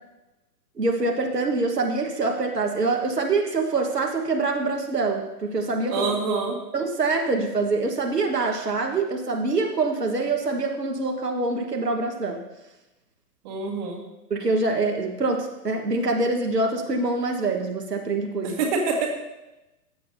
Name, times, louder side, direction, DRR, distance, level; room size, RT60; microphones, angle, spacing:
voice 1, 0.8-6.1 6.7-12.4 14.3-18.6, right 3 dB, 80° right, 2 dB, 1.5 m, -25 dB
voice 2, 5.9-6.6 13.4-14.0 18.4-19.1, right 4 dB, 30° right, 2 dB, 1.6 m, -26 dB
14.0 x 8.4 x 2.7 m, 0.98 s
figure-of-eight pair, 120°, 47 cm